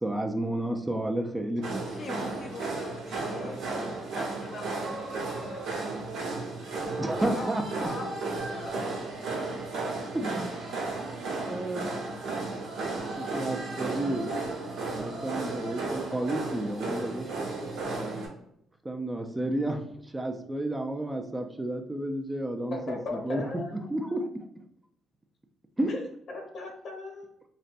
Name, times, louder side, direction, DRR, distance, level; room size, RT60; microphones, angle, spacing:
voice 1, 0.0-2.1 7.0-8.0 10.1-10.6 11.5-11.9 13.2-14.3 14.9-17.7 18.0-18.3 18.8-23.0 23.2-23.4 23.9-24.3 25.8-25.9, right 1 dB, 15° right, 4 dB, 0.4 m, -31 dB
sound 1, 1.6-18.3, right 3 dB, 90° right, 1.0 m, -34 dB
voice 2, 1.9-5.7 7.2-8.8, left 3 dB, 50° left, 3 dB, 0.4 m, -43 dB
voice 3, 3.2-3.9 8.7-8.8 15.5-15.6 22.7-23.9 25.9-26.0 26.3-27.3, left 3 dB, 65° left, 0 dB, 0.8 m, -38 dB
4.1 x 2.1 x 2.5 m, 0.72 s
cardioid pair, 90°, 0 cm